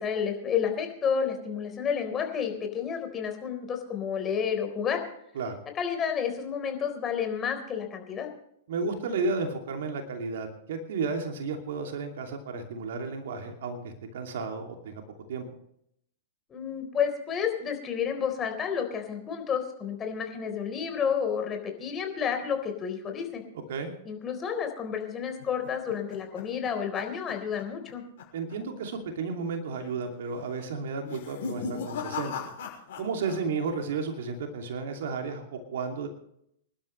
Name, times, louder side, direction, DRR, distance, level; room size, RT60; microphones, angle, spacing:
voice 1, 0.0-5.0 5.7-8.3 16.5-23.4 24.0-28.0, left 7 dB, 25° left, 5 dB, 4.0 m, -30 dB
voice 2, 8.7-15.0 15.3-15.4 23.7-23.9 28.3-32.5 33.0-36.1, right 4 dB, 65° right, 4 dB, 2.7 m, -33 dB
sound 1, 25.4-27.9 28.2-28.5 28.8-28.9 29.7-30.1 31.0-33.4 33.7-34.2, left 5 dB, 60° left, 6.2 m, -38 dB
26.0 x 12.0 x 3.3 m, 0.73 s
figure-of-eight pair, 105°, 0 cm